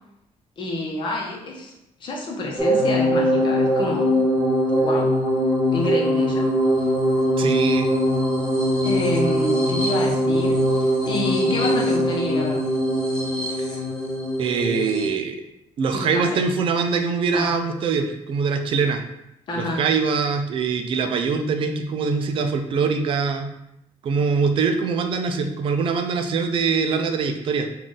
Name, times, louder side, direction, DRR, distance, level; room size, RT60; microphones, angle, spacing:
voice 1, 0.6-1.7 2.0-4.1 4.8-5.2 5.7-6.5 6.8-6.9 8.8-12.6 15.9-16.5 17.3-17.5 19.5-19.9, left 1 dB, 40° left, -2 dB, 0.8 m, -28 dB
sound 1, 2.6-15.1, equal, 5° left, 0.9 m, -21 dB
voice 2, 7.4-7.9 14.4-15.4 15.8-19.0 19.5-23.5 24.0-27.7, right 5 dB, 45° right, 5 dB, 0.4 m, -23 dB
3.8 x 2.4 x 3.8 m, 0.83 s
cardioid pair, 180°, 12 cm